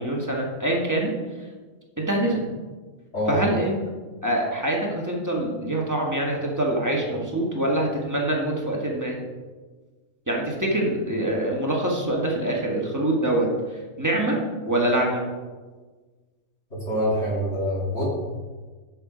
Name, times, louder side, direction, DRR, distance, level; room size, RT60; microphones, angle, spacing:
voice 1, 0.0-1.5 2.0-2.4 3.3-3.8 4.2-9.1 10.3-14.4 14.6-15.2, right 1 dB, 10° right, -2 dB, 1.4 m, -25 dB
voice 2, 16.9-18.0, equal, 45° left, -6 dB, 2.6 m, -25 dB
7.2 x 6.8 x 5.0 m, 1.4 s
omnidirectional pair, 1.6 m